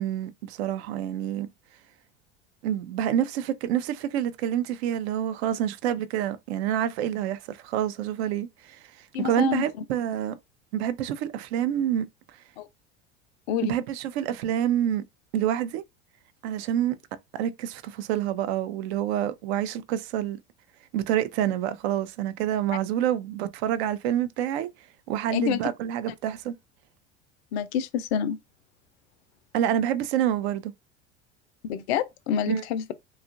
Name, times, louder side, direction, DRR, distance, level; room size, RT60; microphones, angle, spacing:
voice 1, 0.0-1.5 2.6-8.8 9.2-10.4 10.7-12.1 13.6-15.0 15.3-15.8 16.4-17.0 17.3-20.4 20.9-24.7 25.1-26.5 29.5-30.7 32.5-32.6, right 10 dB, 65° right, 0.5 m, -27 dB
voice 2, 9.1-9.7 12.6-12.7 13.5-13.7 25.3-25.6 27.5-28.4 31.6-32.9, left 8 dB, 65° left, 0.5 m, -27 dB
2.8 x 2.4 x 2.4 m
hypercardioid pair, 80°, 35 cm